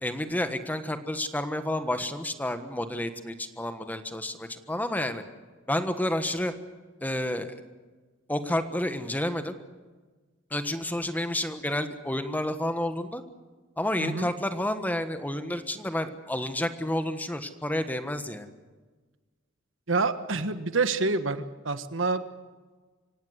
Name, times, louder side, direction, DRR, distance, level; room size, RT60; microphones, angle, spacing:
voice 1, 0.0-5.2 5.7-6.5 7.0-7.6 8.3-9.5 10.5-13.2 13.8-18.5, left 1 dB, 10° left, 9 dB, 1.4 m, -30 dB
voice 2, 19.9-22.2, right 3 dB, 90° right, 11 dB, 1.4 m, -27 dB
25.5 x 17.0 x 8.1 m, 1.3 s
head